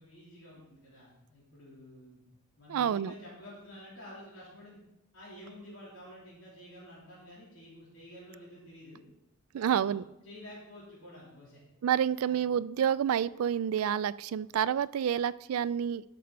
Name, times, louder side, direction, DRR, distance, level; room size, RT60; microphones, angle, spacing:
voice 1, 0.0-2.2 2.6-4.8 5.1-9.0 9.5-11.6 12.2-12.4, left 1 dB, 60° left, -7 dB, 3.4 m, -50 dB
voice 2, 2.7-3.1 9.5-10.0 11.8-16.0, right 9 dB, 75° right, 17 dB, 0.3 m, -29 dB
12.0 x 6.4 x 4.0 m, 0.85 s
head